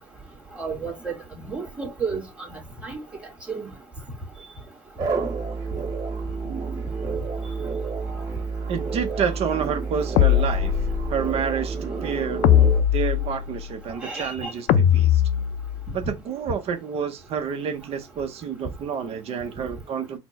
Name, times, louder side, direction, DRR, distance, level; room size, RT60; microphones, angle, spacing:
voice 1, 0.6-1.1 1.5-2.2 2.8-3.0 3.5-3.7 14.0-14.5, right 5 dB, 10° right, 1.6 m, -31 dB
sound 1, 5.0-12.8, right 4 dB, 35° right, 1.4 m, -29 dB
voice 2, 8.7-10.7 11.1-12.5 12.9-15.2 15.9-20.2, right 7 dB, 55° right, 0.6 m, -29 dB
sound 2, 10.2-11.2 12.4-13.7 14.7-15.9, left 10 dB, 90° left, 0.4 m, -20 dB
4.3 x 2.0 x 4.0 m
cardioid pair, 115°, 12 cm